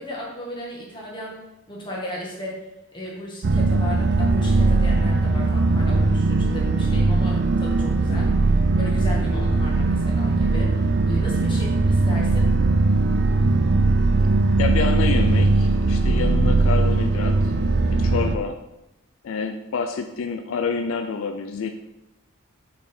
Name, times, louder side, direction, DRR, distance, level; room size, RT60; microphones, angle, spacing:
voice 1, 0.0-1.4 1.7-2.6 2.9-8.3 8.7-10.7 11.1-12.5, equal, 25° left, -3 dB, 1.5 m, -34 dB
sound 1, 3.4-18.4, right 3 dB, 50° right, 0.4 m, -19 dB
voice 2, 14.6-17.5 18.0-18.6 19.2-21.7, left 5 dB, 70° left, 7 dB, 0.4 m, -28 dB
5.9 x 4.2 x 4.3 m, 0.91 s
head